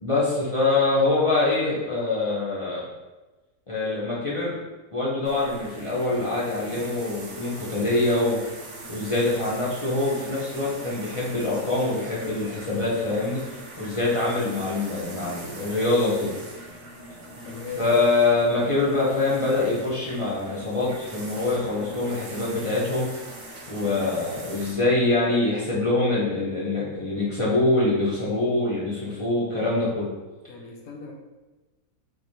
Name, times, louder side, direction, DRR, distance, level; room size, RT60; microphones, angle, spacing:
voice 1, 0.0-2.8 3.7-4.6 4.9-8.4 8.9-13.4 13.8-16.3 17.8-23.1 23.7-30.1, left 2 dB, 45° left, -7 dB, 0.4 m, -24 dB
sound 1, 5.2-24.7, right 1 dB, 55° right, 0.6 m, -41 dB
voice 2, 17.4-18.2 30.5-31.1, left 5 dB, 70° left, 1 dB, 1.0 m, -38 dB
3.9 x 3.1 x 2.7 m, 1.2 s
omnidirectional pair, 1.6 m